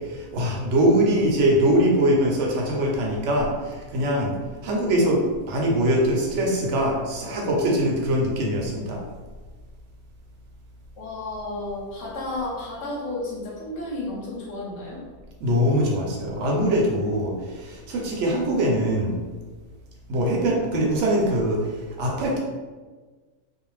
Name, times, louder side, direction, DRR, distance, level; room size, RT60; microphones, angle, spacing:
voice 1, 0.1-4.4 4.6-9.0 15.4-19.2 20.1-21.6 22.0-22.4, equal, 65° right, -1 dB, 0.8 m, -22 dB
voice 2, 11.0-15.0, left 2 dB, 55° left, -3 dB, 0.9 m, -32 dB
2.5 x 2.1 x 3.1 m, 1.4 s
omnidirectional pair, 1.6 m